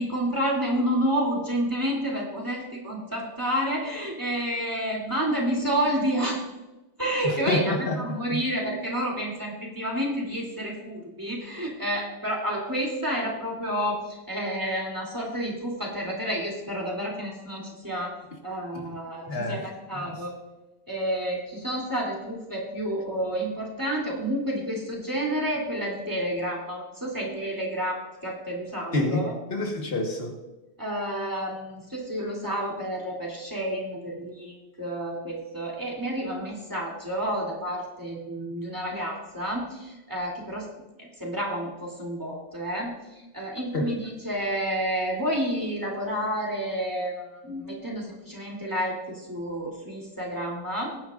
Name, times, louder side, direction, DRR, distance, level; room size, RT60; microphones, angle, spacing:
voice 1, 0.0-6.4 7.0-18.2 18.4-19.6 19.9-20.3 20.9-29.3 30.8-40.7 41.0-51.0, equal, 20° right, -3 dB, 2.8 m, -30 dB
voice 2, 7.2-8.4 19.3-19.6 19.9-20.1 28.9-30.4 43.7-43.9, left 2 dB, 75° left, 2 dB, 1.7 m, -28 dB
19.5 x 9.6 x 2.5 m, 1.0 s
omnidirectional pair, 1.0 m